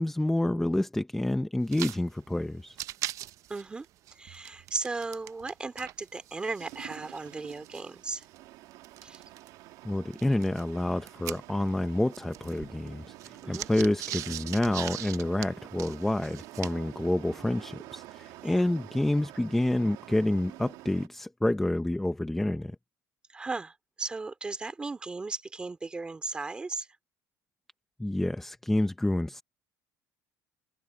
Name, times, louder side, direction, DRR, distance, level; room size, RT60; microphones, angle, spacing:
voice 1, 0.0-2.8 9.8-22.8 28.0-29.4, left 1 dB, 5° left, 0.6 m, -28 dB
sound 1, 1.6-2.0 2.3-2.4 2.7-5.5 5.8-9.5 10.1-11.8 12.1-16.9, right 13 dB, 50° right, 0.6 m, -40 dB
voice 2, 3.5-3.9 4.2-8.3 9.0-9.2 13.4-13.7 18.4-18.6 23.3-26.9, right 3 dB, 15° right, 2.8 m, -36 dB
sound 2, 6.6-21.1, right 17 dB, 75° right, 2.1 m, -49 dB
cardioid pair, 165°, 7 cm